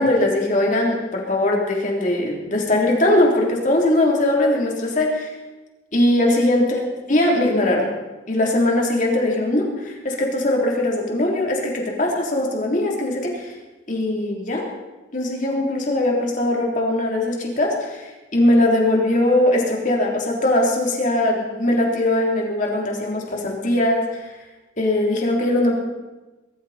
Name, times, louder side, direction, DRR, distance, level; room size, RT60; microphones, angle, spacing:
voice 1, 0.0-5.3 5.9-6.8 7.1-7.9 8.3-13.5 13.9-14.7 15.1-18.0 18.3-24.2 24.8-25.7, left 1 dB, 45° left, -1 dB, 3.6 m, -20 dB
22.0 x 13.5 x 4.4 m, 1.1 s
head